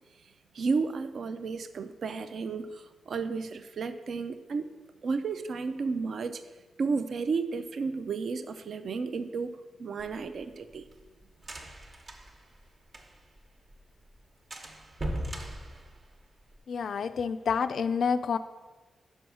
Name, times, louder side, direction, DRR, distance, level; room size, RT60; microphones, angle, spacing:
voice 1, 0.5-4.7 5.0-6.4 6.8-10.9, right 4 dB, 60° right, 10 dB, 0.4 m, -32 dB
sound 1, 10.0-13.4 13.7-13.8 14.1-14.2 14.5-16.6, right 1 dB, 35° right, 1.0 m, -39 dB
voice 2, 16.7-18.4, left 6 dB, 60° left, 11 dB, 0.3 m, -28 dB
6.2 x 5.3 x 6.2 m, 1.3 s
wide cardioid pair, 120°, 0 cm